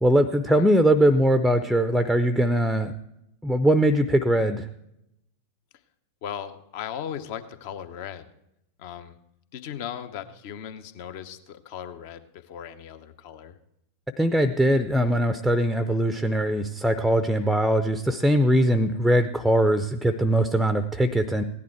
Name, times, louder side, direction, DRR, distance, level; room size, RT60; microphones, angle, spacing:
voice 1, 0.0-2.9 3.4-4.7 14.2-21.4, right 1 dB, ahead, 11 dB, 0.6 m, -21 dB
voice 2, 6.2-8.3 8.8-9.2 9.5-13.6, left 9 dB, 50° left, 11 dB, 0.9 m, -37 dB
16.5 x 11.0 x 4.6 m, 0.83 s
figure-of-eight pair, 90°, 0 cm